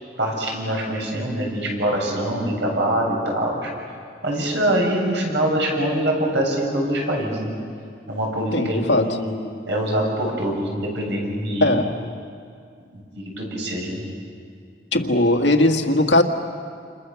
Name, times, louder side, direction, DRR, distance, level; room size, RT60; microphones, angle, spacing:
voice 1, 0.2-3.7 4.2-7.5 8.1-9.3 9.7-11.7 12.9-14.0, right 1 dB, 65° right, -1 dB, 7.7 m, -24 dB
voice 2, 8.5-9.2 11.6-12.1 14.9-16.2, left 1 dB, 70° left, 4 dB, 1.9 m, -19 dB
29.0 x 29.0 x 7.1 m, 2.3 s
head